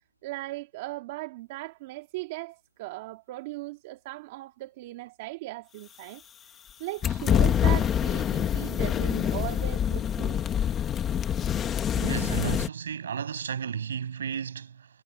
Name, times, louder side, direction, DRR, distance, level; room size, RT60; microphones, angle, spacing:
voice 1, 0.2-6.2 6.8-10.4, right 19 dB, 15° right, 2.5 m, -38 dB
sound 1, 7.0-12.7, left 9 dB, 5° left, 1.4 m, -26 dB
voice 2, 12.0-14.9, right 7 dB, 35° right, 7.1 m, -33 dB
hypercardioid pair, 175°, 0 cm